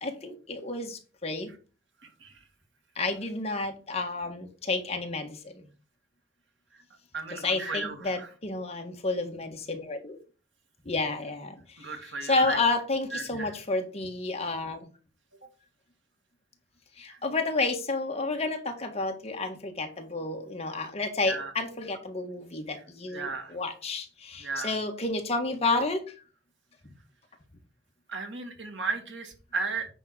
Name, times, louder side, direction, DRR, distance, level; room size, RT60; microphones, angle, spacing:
voice 1, 0.0-1.5 2.9-5.6 7.3-10.2 10.8-11.9 12.2-14.8 17.0-26.0, left 3 dB, 35° left, 3 dB, 1.5 m, -30 dB
voice 2, 2.0-2.4 6.7-6.8 7.1-8.3 11.8-12.6 13.1-13.5 17.1-17.2 21.2-21.5 23.1-23.6 24.4-24.7 28.1-29.9, right 3 dB, 75° right, 4 dB, 2.0 m, -35 dB
8.8 x 3.7 x 6.1 m, 0.36 s
head